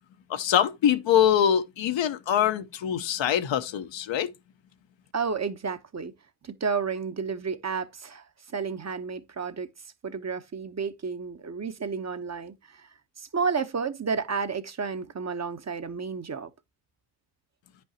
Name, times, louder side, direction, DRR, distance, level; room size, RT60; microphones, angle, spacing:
voice 1, 0.3-4.3, left 9 dB, 65° left, 1.0 m, -24 dB
voice 2, 5.1-6.1 6.4-9.7 10.0-12.9 13.2-16.5, right 5 dB, 35° right, 1.0 m, -31 dB
9.4 x 5.4 x 2.8 m
supercardioid pair, 60°, 49 cm